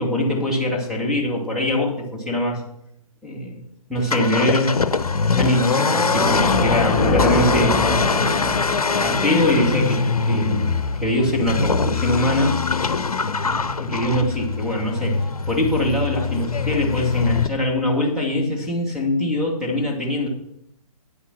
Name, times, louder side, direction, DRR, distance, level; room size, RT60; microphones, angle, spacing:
voice 1, 0.0-2.6 3.2-3.6 3.9-4.8 5.4-7.8 8.2-8.6 9.0-10.7 11.0-12.6 13.4-20.3, left 1 dB, 5° right, -2 dB, 2.3 m, -23 dB
Accelerating revving vroom, 3.9-17.5, left 5 dB, 75° left, 0.9 m, -23 dB
sound 1, 5.9-11.1, left 3 dB, 20° left, 2.3 m, -24 dB
9.4 x 8.3 x 6.0 m, 0.75 s
figure-of-eight pair, 135°, 19 cm